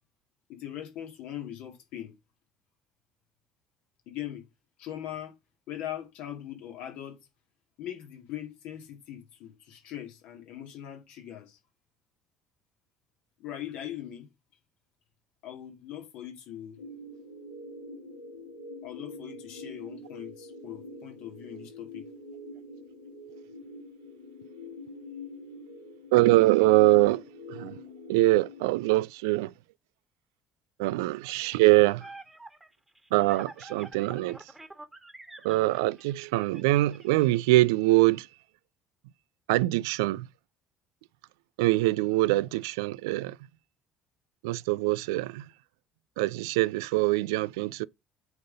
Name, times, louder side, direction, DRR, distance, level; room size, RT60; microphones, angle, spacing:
voice 1, 0.5-2.1 4.1-4.5 4.8-5.3 5.7-7.2 7.8-11.6 13.4-14.3 15.4-16.8 18.8-22.0, left 11 dB, 60° left, 2.2 m, -40 dB
sound 1, 16.8-28.6, left 2 dB, 80° left, 2.3 m, -44 dB
voice 2, 26.1-27.2 27.5-27.8 28.1-29.5 30.8-32.1 33.1-34.4 35.4-38.3 39.5-40.3 41.6-43.4 44.4-45.5 46.2-47.9, right 19 dB, 70° right, 0.3 m, -23 dB
sound 2, 31.5-37.2, right 2 dB, 10° right, 1.6 m, -48 dB
8.0 x 3.8 x 5.2 m
figure-of-eight pair, 55°, 2 cm